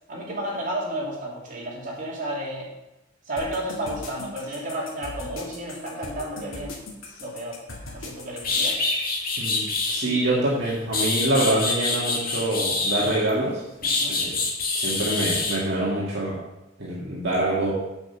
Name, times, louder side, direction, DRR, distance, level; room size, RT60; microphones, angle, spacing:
voice 1, 0.1-2.7 3.3-6.8 7.2-7.6 7.9-8.8 13.8-14.2, right 1 dB, 40° right, -4 dB, 3.0 m, -32 dB
sound 1, 3.4-8.6, left 2 dB, 85° left, 2.0 m, -39 dB
sound 2, 8.0-8.1 8.4-10.1 10.6-13.3 13.8-15.6, left 3 dB, 45° left, 2.4 m, -26 dB
voice 2, 9.4-13.6 14.1-14.4 14.8-16.4 16.8-17.7, right 1 dB, 60° right, -6 dB, 1.9 m, -25 dB
7.6 x 6.3 x 7.2 m, 1.0 s
head